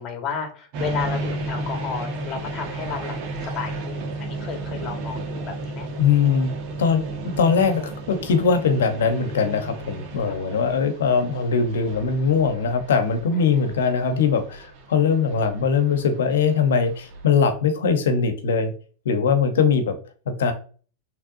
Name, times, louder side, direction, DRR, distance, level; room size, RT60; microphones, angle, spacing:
voice 1, 0.0-5.9 10.3-10.6 13.3-13.4, left 6 dB, 40° left, 4 dB, 1.5 m, -33 dB
sound 1, 0.7-17.3, right 2 dB, 55° right, 1.3 m, -33 dB
voice 2, 6.0-6.5 6.8-18.7 19.0-20.0 20.4-20.5, left 5 dB, 75° left, 8 dB, 0.9 m, -21 dB
6.0 x 3.4 x 2.6 m, 0.40 s
hypercardioid pair, 100°, 0 cm